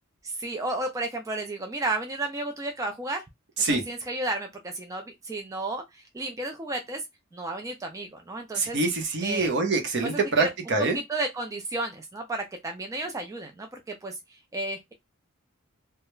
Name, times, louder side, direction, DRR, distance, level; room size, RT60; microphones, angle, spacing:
voice 1, 0.2-3.2 3.7-7.0 7.3-8.8 9.2-9.5 10.0-10.5 11.1-14.9, right 2 dB, 15° right, 0.3 m, -32 dB
voice 2, 8.5-11.0, right 3 dB, 60° right, 0.7 m, -25 dB
2.3 x 2.0 x 3.0 m
head